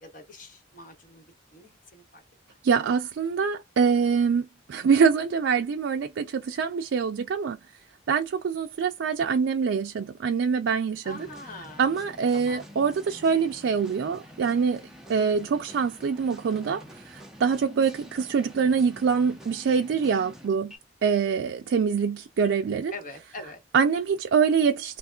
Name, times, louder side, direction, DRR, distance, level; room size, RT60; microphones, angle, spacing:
voice 1, 0.0-2.2 11.0-11.9 12.3-12.6 22.9-23.6, left 2 dB, 45° left, 1.0 m, -43 dB
voice 2, 2.6-7.6 8.1-11.3 11.8-14.8 15.1-20.7 21.0-22.9 23.7-25.0, right 6 dB, 75° right, 0.3 m, -24 dB
sound 1, 11.1-20.8, equal, 5° right, 0.6 m, -47 dB
3.2 x 2.2 x 2.3 m
head